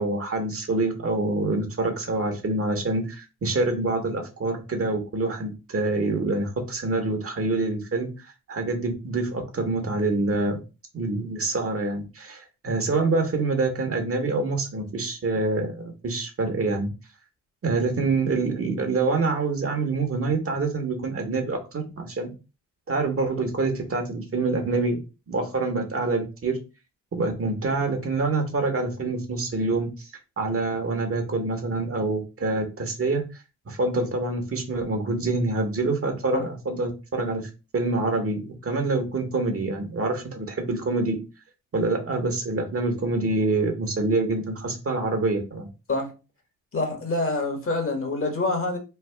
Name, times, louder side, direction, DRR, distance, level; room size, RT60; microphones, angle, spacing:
voice 1, 0.0-10.6 10.9-16.9 17.6-22.3 22.9-25.0 25.3-26.6 27.1-30.1 30.4-33.2 33.7-41.2 41.7-45.7, right 3 dB, 45° right, 1.2 m, -26 dB
voice 2, 46.7-48.8, left 2 dB, 40° left, 1.3 m, -26 dB
3.3 x 2.2 x 3.4 m
supercardioid pair, 60°, 32 cm